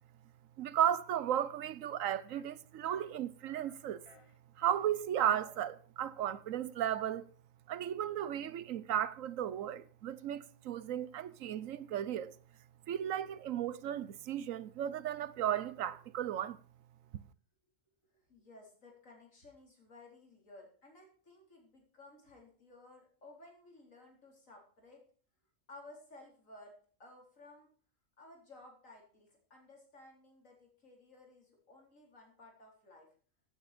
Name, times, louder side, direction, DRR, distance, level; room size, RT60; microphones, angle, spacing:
voice 1, 0.6-4.0 4.6-7.3 7.7-12.3 12.9-16.6, right 10 dB, 80° right, 1.1 m, -35 dB
sound 1, 2.3-2.4 2.9-3.1 3.5-3.8 4.1-4.8 5.2-5.6, left 3 dB, 25° left, 1.1 m, -59 dB
voice 2, 18.1-25.0 25.7-27.7 28.2-33.1, left 2 dB, 80° left, 4.4 m, -57 dB
15.5 x 8.9 x 5.1 m
omnidirectional pair, 1.4 m